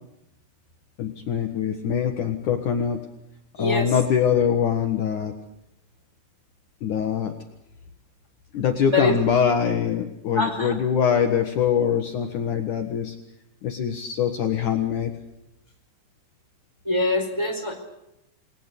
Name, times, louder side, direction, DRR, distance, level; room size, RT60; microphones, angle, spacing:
voice 1, 1.0-3.0 3.6-5.3 6.8-7.3 8.5-13.2 13.6-15.1, left 7 dB, 80° left, 5 dB, 1.7 m, -23 dB
voice 2, 3.6-3.9 8.9-9.2 10.3-10.8 16.8-17.8, left 2 dB, 5° right, 1 dB, 3.7 m, -24 dB
28.5 x 20.5 x 8.4 m, 0.86 s
omnidirectional pair, 5.9 m